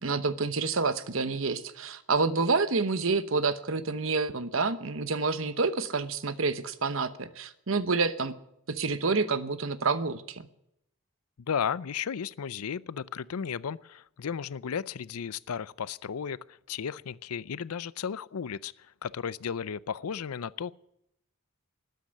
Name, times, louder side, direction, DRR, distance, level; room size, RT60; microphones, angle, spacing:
voice 1, 0.0-8.3 8.7-10.5, right 4 dB, 65° right, 1.0 m, -28 dB
voice 2, 11.5-20.7, left 7 dB, 90° left, 0.5 m, -34 dB
13.0 x 9.3 x 9.9 m
head